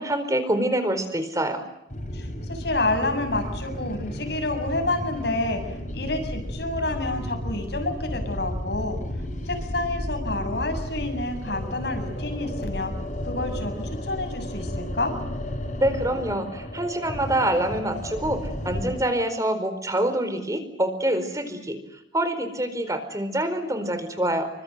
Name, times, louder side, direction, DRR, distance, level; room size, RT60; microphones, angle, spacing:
voice 1, 0.0-1.6 15.8-21.8 22.1-24.5, right 1 dB, 15° right, 10 dB, 4.3 m, -26 dB
sound 1, 1.9-19.0, left 1 dB, 40° left, 6.9 m, -33 dB
voice 2, 2.1-9.0 9.4-12.9 13.2-15.2, left 2 dB, 60° left, 6 dB, 7.3 m, -29 dB
29.0 x 25.0 x 7.9 m, 0.82 s
head